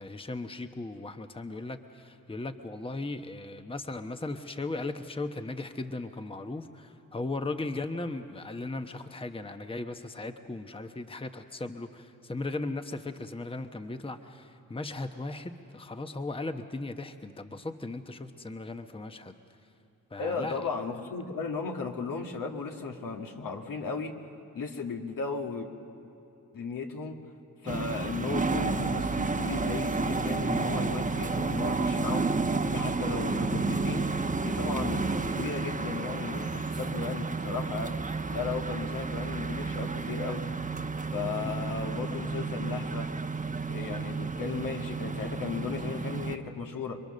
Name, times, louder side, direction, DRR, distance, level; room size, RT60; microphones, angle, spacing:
voice 1, 0.0-19.4 20.1-20.6 41.4-41.5, left 2 dB, 15° left, 7 dB, 1.1 m, -37 dB
voice 2, 20.2-24.2 24.5-25.7 26.5-27.2 27.6-32.3 32.7-34.1 34.4-38.0 38.3-40.4 41.1-43.1 43.7-47.0, left 5 dB, 70° left, 2 dB, 2.2 m, -35 dB
sound 1, 27.7-46.4, right 4 dB, 20° right, 1.1 m, -31 dB
29.0 x 22.5 x 6.7 m, 2.9 s
cardioid pair, 60°, 34 cm